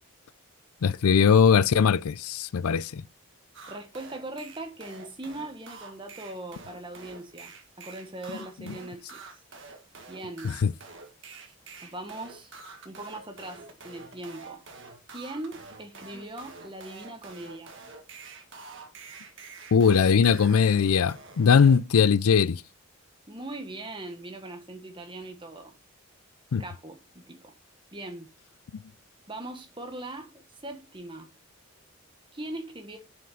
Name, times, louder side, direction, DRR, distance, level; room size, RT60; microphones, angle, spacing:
voice 1, 0.8-3.0 8.7-8.8 10.4-10.7 19.7-22.6 26.5-26.6, left 6 dB, 80° left, 0.5 m, -20 dB
sound 1, 3.5-21.8, right 4 dB, 55° right, 1.6 m, -47 dB
voice 2, 3.7-9.2 10.1-10.5 11.8-12.5 12.8-14.6 15.1-17.7 23.3-25.8 26.6-27.5 27.9-28.3 29.3-30.3 30.6-31.3 32.3-33.0, right 2 dB, 20° right, 1.4 m, -40 dB
7.0 x 6.5 x 5.1 m
head